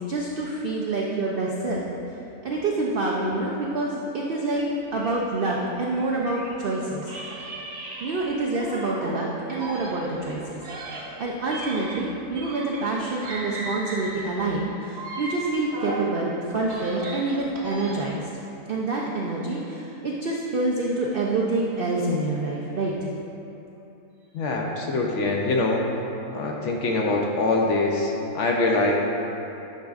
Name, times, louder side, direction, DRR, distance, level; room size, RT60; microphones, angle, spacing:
voice 1, 0.0-1.8 2.4-4.6 4.9-7.1 8.0-18.3 18.7-22.9, right 2 dB, 75° right, -3 dB, 0.5 m, -27 dB
sound 1, 4.5-6.6 7.0-9.2 9.5-13.0 13.2-16.1 16.5-18.2, right 1 dB, 55° right, 0.9 m, -37 dB
voice 2, 24.3-25.8 26.3-29.0, left 2 dB, 65° left, 0 dB, 0.8 m, -24 dB
9.6 x 5.0 x 2.4 m, 3.0 s
omnidirectional pair, 1.6 m